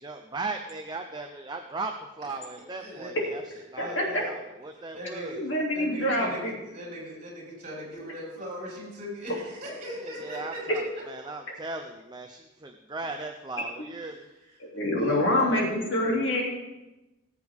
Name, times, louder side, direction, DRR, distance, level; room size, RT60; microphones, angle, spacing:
voice 1, 0.0-3.4 3.7-5.4 10.0-14.3, right 3 dB, 20° right, 4 dB, 0.6 m, -37 dB
voice 2, 2.8-3.2 3.8-4.2 4.7-11.5 14.0-14.5 15.0-16.2, equal, 35° right, -6 dB, 5.3 m, -40 dB
voice 3, 5.3-6.5 14.7-16.4, left 1 dB, 65° left, -2 dB, 2.9 m, -25 dB
19.5 x 8.1 x 3.6 m, 1.0 s
head